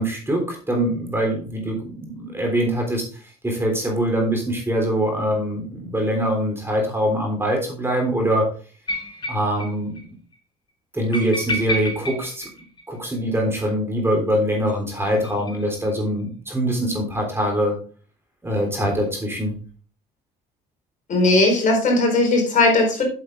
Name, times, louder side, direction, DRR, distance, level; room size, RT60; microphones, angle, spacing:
voice 1, 0.0-3.1 3.4-8.5 9.3-10.0 10.9-12.5 12.9-17.8 18.4-19.5, equal, 15° right, 1 dB, 3.5 m, -23 dB
sound 1, 8.9-9.7 10.0-10.1 10.3-10.4 11.1-13.2 14.7-15.9, equal, 25° left, 1.8 m, -30 dB
voice 2, 21.1-23.0, left 2 dB, 50° left, 1 dB, 4.3 m, -18 dB
8.1 x 7.7 x 3.8 m, 0.39 s
cardioid pair, 110°, 17 cm